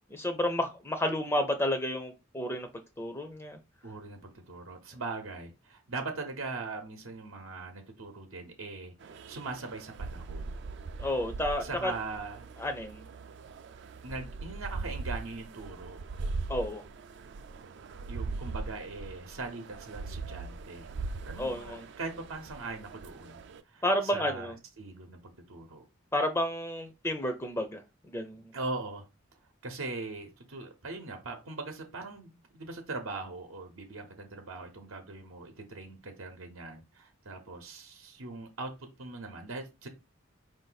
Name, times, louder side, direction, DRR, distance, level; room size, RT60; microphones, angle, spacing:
voice 1, 0.1-2.7 3.0-3.6 11.0-11.9 12.6-13.1 16.5-16.8 21.4-21.8 23.8-24.5 26.1-27.8 28.1-28.4, left 1 dB, 10° left, 0.4 m, -31 dB
voice 2, 3.8-10.6 11.6-12.5 14.0-16.0 18.1-20.9 21.3-23.4 23.7-25.8 28.5-29.1 29.6-39.9, right 3 dB, 85° right, 0.8 m, -41 dB
sound 1, 9.0-23.6, right 3 dB, 55° right, 0.3 m, -41 dB
4.6 x 2.6 x 3.9 m
head